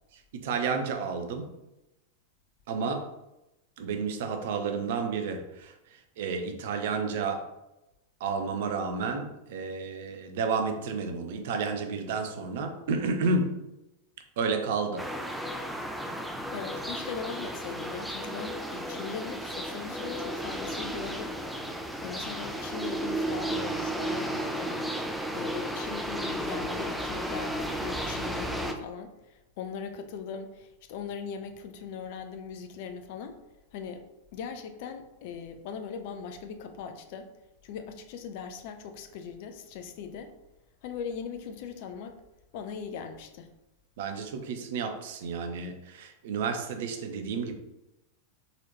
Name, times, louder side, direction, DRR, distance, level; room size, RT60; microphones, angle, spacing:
voice 1, 0.3-1.5 2.7-3.1 3.8-7.4 8.2-13.5 14.4-15.0 44.0-47.5, right 4 dB, 55° right, 6 dB, 0.6 m, -31 dB
sound 1, 15.0-28.7, right 1 dB, ahead, 0.5 m, -34 dB
voice 2, 16.5-21.3 21.7-24.8 25.3-33.4 33.7-34.0 34.3-37.3 37.6-40.3 40.8-42.2 42.5-43.5, left 6 dB, 50° left, 7 dB, 0.5 m, -39 dB
4.2 x 4.0 x 3.0 m, 0.92 s
figure-of-eight pair, 90°, 0 cm